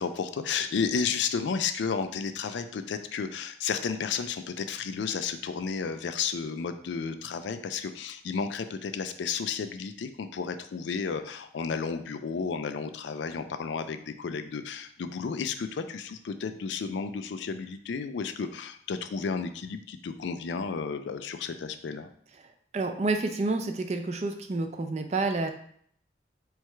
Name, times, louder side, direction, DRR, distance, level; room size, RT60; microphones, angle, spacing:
voice 1, 0.0-22.1, left 5 dB, 75° left, 9 dB, 0.4 m, -32 dB
voice 2, 22.7-25.5, right 3 dB, 35° right, 6 dB, 0.4 m, -29 dB
4.6 x 2.3 x 4.3 m, 0.62 s
head